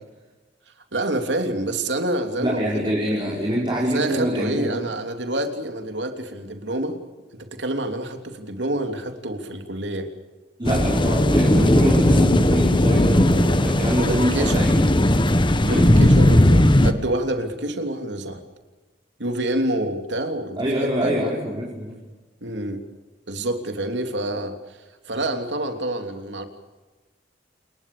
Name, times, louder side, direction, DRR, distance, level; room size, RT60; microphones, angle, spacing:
voice 1, 0.9-3.2 3.8-6.9 7.3-10.1 14.1-14.6 15.7-18.4 19.2-21.3 22.4-22.8 23.3-24.5 25.1-26.5, right 1 dB, 75° right, 6 dB, 3.3 m, -27 dB
voice 2, 2.4-4.7 10.6-14.9 15.6-15.9 20.6-21.9, equal, 25° right, -3 dB, 5.5 m, -25 dB
sound 1, 10.6-16.9, left 1 dB, 30° left, 1.4 m, -17 dB
28.5 x 22.0 x 6.9 m, 1.2 s
head